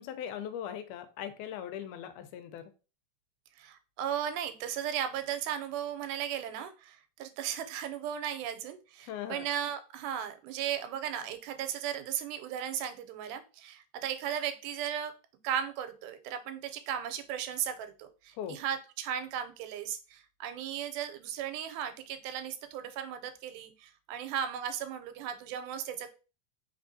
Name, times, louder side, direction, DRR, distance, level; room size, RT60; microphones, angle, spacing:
voice 1, 0.0-2.6 9.0-9.4 18.4-18.6, left 9 dB, 80° left, 9 dB, 2.0 m, -39 dB
voice 2, 3.6-15.1 15.4-26.1, right 9 dB, 85° right, 9 dB, 2.1 m, -36 dB
4.3 x 3.4 x 2.6 m, 0.33 s
omnidirectional pair, 3.6 m